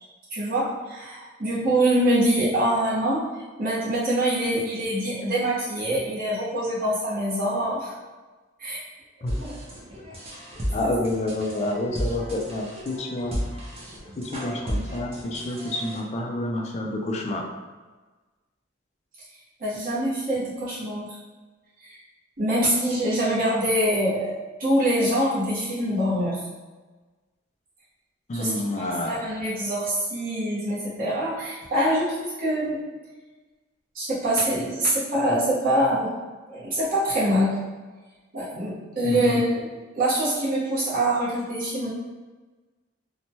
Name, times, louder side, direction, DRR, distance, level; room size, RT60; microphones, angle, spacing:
voice 1, 0.3-7.9 8.6-8.8 9.2-9.5 10.8-10.9 19.6-21.2 21.8-22.0 22.4-26.4 28.3-32.8 33.9-36.1 36.5-37.5 38.3-39.7 39.9-41.9, right 1 dB, 50° right, -9 dB, 1.0 m, -25 dB
sound 1, 9.3-16.0, equal, 30° right, 0.5 m, -33 dB
voice 2, 10.7-13.4 14.2-17.4 28.3-29.2 39.0-39.4, left 1 dB, 35° left, 1 dB, 0.3 m, -28 dB
3.0 x 2.2 x 2.7 m, 1.3 s
head